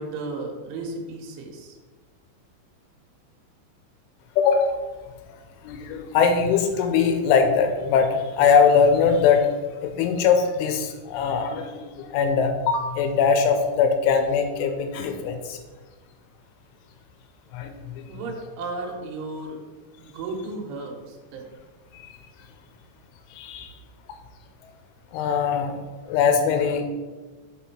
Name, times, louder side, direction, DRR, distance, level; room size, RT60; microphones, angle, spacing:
voice 1, 0.0-1.8 18.1-19.6 20.0-21.5, right 3 dB, 85° right, 0 dB, 3.4 m, -34 dB
voice 2, 4.4-4.8 5.6-9.5 9.8-15.6 17.5-18.1 21.9-22.1 23.3-23.7 25.1-25.8 26.1-26.8, left 6 dB, 85° left, 6 dB, 3.2 m, -21 dB
7.7 x 4.4 x 4.3 m, 1.3 s
omnidirectional pair, 5.5 m